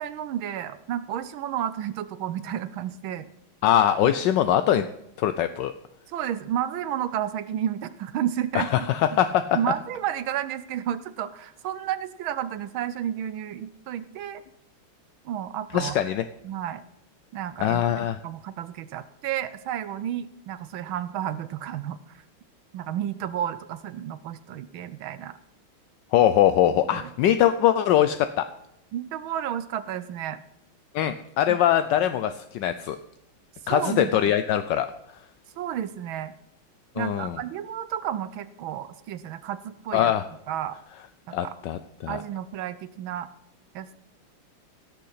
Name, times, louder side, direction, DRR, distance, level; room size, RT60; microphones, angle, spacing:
voice 1, 0.0-3.3 4.0-4.1 6.1-9.2 9.5-14.4 15.2-16.0 16.4-16.8 17.3-17.8 18.2-22.0 22.7-25.3 26.9-27.1 28.9-30.4 31.5-31.6 33.7-34.2 35.6-36.3 37.0-40.1 40.5-40.8 41.3-41.5 42.1-43.3 43.7-44.0, right 10 dB, 75° right, 14 dB, 1.4 m, -31 dB
voice 2, 3.6-4.9 5.2-5.7 8.5-9.6 15.7-16.2 17.6-18.2 26.1-28.5 30.9-33.0 33.7-34.9 37.0-37.4 39.9-40.2 41.3-42.2, left 11 dB, 75° left, 10 dB, 1.1 m, -22 dB
16.5 x 6.7 x 5.7 m, 0.80 s
omnidirectional pair, 2.4 m